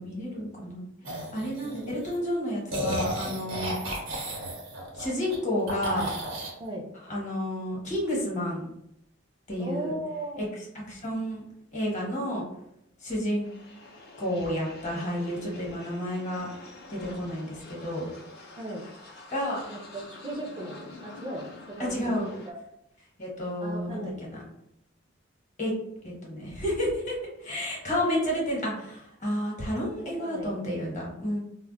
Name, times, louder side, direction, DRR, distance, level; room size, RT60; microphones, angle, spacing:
voice 1, 0.0-0.8 1.1-3.8 5.0-6.1 7.1-8.6 9.5-9.9 10.4-10.5 10.7-11.4 11.7-12.4 13.0-13.4 14.2-16.5 16.9-18.1 19.3-19.7 21.8-22.3 23.2-24.4 25.6-25.7 26.0-31.4, equal, 40° left, -3 dB, 0.9 m, -31 dB
sound 1, 1.0-2.2 2.7-5.4 5.7-6.5, right 1 dB, 90° right, 0.7 m, -33 dB
voice 2, 9.6-10.5 18.6-18.9 19.7-22.6 23.6-24.3 27.9-28.2 30.0-30.6, equal, 25° right, -1 dB, 0.4 m, -36 dB
sound 2, 13.4-22.5, left 2 dB, 55° left, 0.5 m, -47 dB
2.1 x 2.1 x 3.7 m, 0.80 s
head